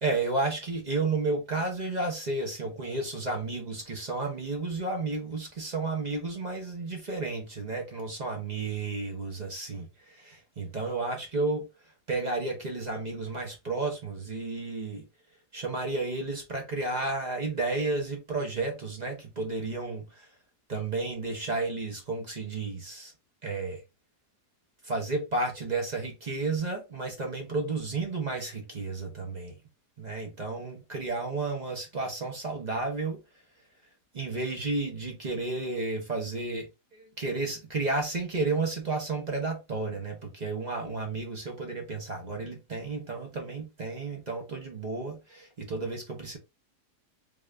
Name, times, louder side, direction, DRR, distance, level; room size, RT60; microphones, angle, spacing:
voice 1, 0.0-11.7 12.1-15.0 15.5-20.3 20.7-23.1 23.4-23.8 24.8-29.6 30.0-33.2 34.1-46.4, right 3 dB, 35° right, 0.7 m, -32 dB
3.5 x 2.5 x 3.2 m
omnidirectional pair, 1.7 m